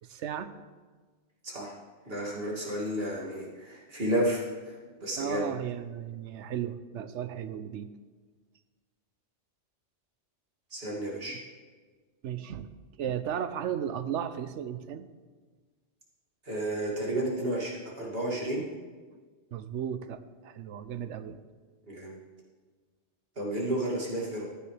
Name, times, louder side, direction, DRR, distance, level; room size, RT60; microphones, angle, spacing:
voice 1, 0.0-0.6 5.2-7.9 12.2-12.7 13.0-15.1 19.5-21.4, right 9 dB, 85° right, 12 dB, 1.0 m, -35 dB
voice 2, 2.0-5.5 10.7-11.4 16.4-18.6 21.9-22.2 23.4-24.4, right 1 dB, 55° right, -4 dB, 2.8 m, -32 dB
15.0 x 10.0 x 3.4 m, 1.4 s
omnidirectional pair, 1.2 m